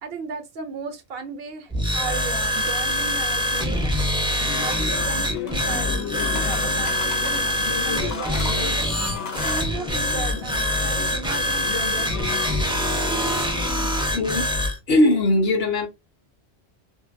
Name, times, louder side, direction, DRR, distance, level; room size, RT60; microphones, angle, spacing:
voice 1, 0.0-4.0 4.6-9.0 9.4-12.3, right 5 dB, 65° right, 0.8 m, -35 dB
sound 1, 1.7-14.8, left 1 dB, 5° right, 0.3 m, -24 dB
sound 2, 4.3-13.9, left 7 dB, 90° left, 0.9 m, -34 dB
sound 3, 5.0-5.9 6.2-7.5 8.0-9.7, left 3 dB, 50° left, 0.5 m, -36 dB
voice 2, 14.1-14.5 14.9-15.9, left 1 dB, 65° left, 1.0 m, -19 dB
2.7 x 2.5 x 2.4 m
omnidirectional pair, 1.1 m